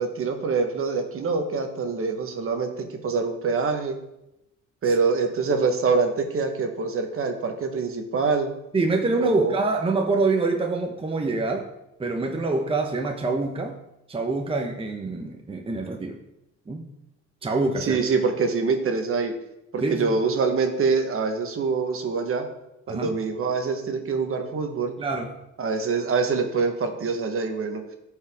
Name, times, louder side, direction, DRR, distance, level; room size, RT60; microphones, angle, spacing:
voice 1, 0.0-2.7 3.0-4.0 4.8-8.5 9.2-9.5 17.9-19.3 19.7-22.4 22.9-24.9 25.6-27.8, right 4 dB, 45° right, 5 dB, 1.2 m, -25 dB
voice 2, 8.7-11.7 12.0-13.8 14.1-16.2 16.7-16.9 17.4-18.0 19.8-20.2 22.9-23.1 25.0-25.3, right 3 dB, 20° right, 2 dB, 0.9 m, -25 dB
14.0 x 4.9 x 3.5 m, 0.88 s
cardioid pair, 115°, 30 cm